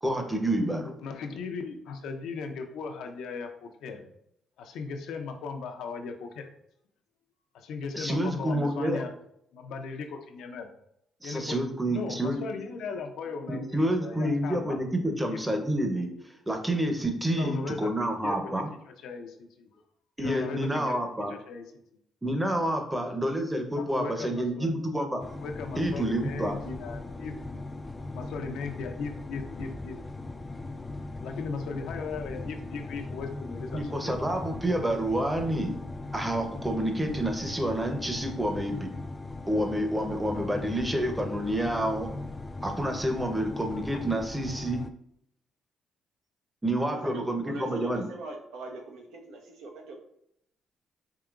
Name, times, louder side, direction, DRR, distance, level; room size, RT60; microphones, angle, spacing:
voice 1, 0.0-0.9 7.9-9.0 11.2-12.4 13.5-16.1 16.5-18.7 20.2-21.3 22.2-25.2 25.8-26.6 33.7-35.8 36.1-38.9 39.5-42.1 42.6-44.8 46.6-48.0, right 1 dB, 10° right, 4 dB, 0.7 m, -28 dB
voice 2, 0.8-4.0 4.6-6.5 7.5-9.1 9.5-10.7 11.2-11.6 11.9-14.8 15.2-15.4 17.3-19.8 20.2-21.0 21.3-21.8 23.7-24.7 25.2-27.4 28.1-30.0 31.0-34.2 43.7-44.0, left 5 dB, 85° left, 4 dB, 0.5 m, -38 dB
sound 1, 25.2-44.9, left 2 dB, 20° left, 0.3 m, -39 dB
voice 3, 46.8-50.0, right 2 dB, 90° right, 2 dB, 0.8 m, -41 dB
4.8 x 2.8 x 2.4 m, 0.75 s
cardioid pair, 90°, 0 cm